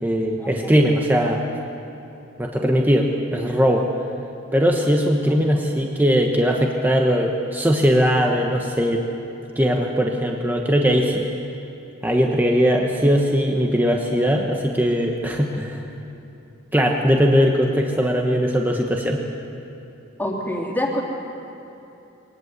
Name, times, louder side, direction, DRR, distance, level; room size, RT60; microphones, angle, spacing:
voice 1, 0.0-1.4 2.4-3.9 4.5-9.0 9.6-11.2 12.0-15.9 16.7-19.2, equal, 10° right, 1 dB, 1.2 m, -20 dB
voice 2, 5.3-5.6 20.2-21.0, left 1 dB, 10° left, -1 dB, 2.9 m, -26 dB
23.0 x 19.0 x 8.2 m, 2.9 s
head